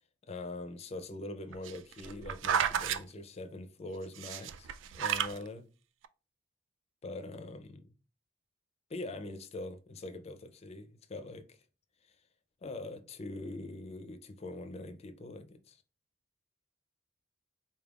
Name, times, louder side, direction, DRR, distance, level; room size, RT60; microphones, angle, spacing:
voice 1, 0.3-5.7 7.0-7.9 8.9-11.6 12.1-12.2 12.6-15.8, left 2 dB, 35° left, 0.4 m, -43 dB
sound 1, 1.5-3.0 4.2-5.4 6.0-6.1, right 8 dB, 80° right, 0.3 m, -32 dB
4.2 x 3.4 x 2.3 m
head